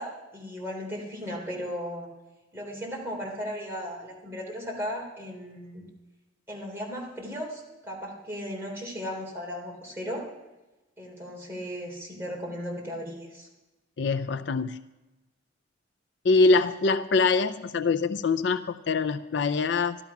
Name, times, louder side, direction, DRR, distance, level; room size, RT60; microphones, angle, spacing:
voice 1, 0.0-2.1 2.5-5.8 6.5-10.2 11.0-13.5, equal, 10° right, -3 dB, 3.5 m, -36 dB
voice 2, 14.0-14.8 16.2-20.0, left 4 dB, 60° left, 10 dB, 0.4 m, -24 dB
13.0 x 12.0 x 5.9 m, 1.1 s
head